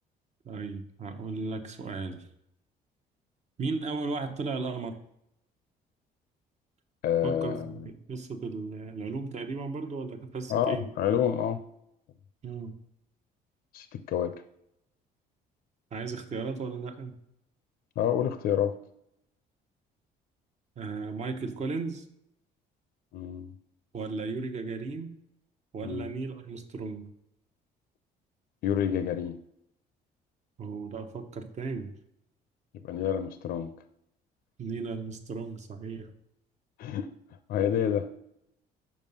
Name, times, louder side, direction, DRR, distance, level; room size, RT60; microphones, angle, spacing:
voice 1, 0.4-2.2 3.6-5.0 7.2-10.9 12.4-12.7 15.9-17.1 20.8-22.1 23.9-25.1 25.7-27.1 30.6-31.9 34.6-36.1, right 4 dB, 45° right, 7 dB, 0.9 m, -35 dB
voice 2, 7.0-7.8 10.5-11.6 13.7-14.3 18.0-18.7 23.1-23.5 25.8-26.1 28.6-29.4 32.8-33.7 36.8-37.1 37.5-38.1, left 9 dB, 60° left, 10 dB, 0.5 m, -28 dB
5.4 x 4.7 x 5.4 m, 0.78 s
cardioid pair, 110°, 17 cm